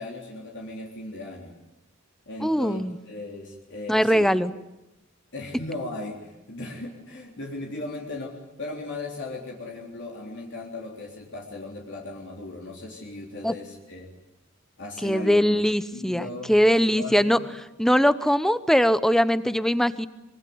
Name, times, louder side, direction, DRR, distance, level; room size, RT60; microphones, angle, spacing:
voice 1, 0.0-1.5 2.3-4.3 5.3-14.1 14.8-15.6 15.9-16.5 16.8-17.4, left 2 dB, 60° left, 0 dB, 3.6 m, -37 dB
voice 2, 2.4-3.0 3.9-4.5 13.4-13.5 15.0-17.4 17.8-20.1, equal, ahead, 14 dB, 0.9 m, -21 dB
24.5 x 23.0 x 9.5 m, 0.96 s
head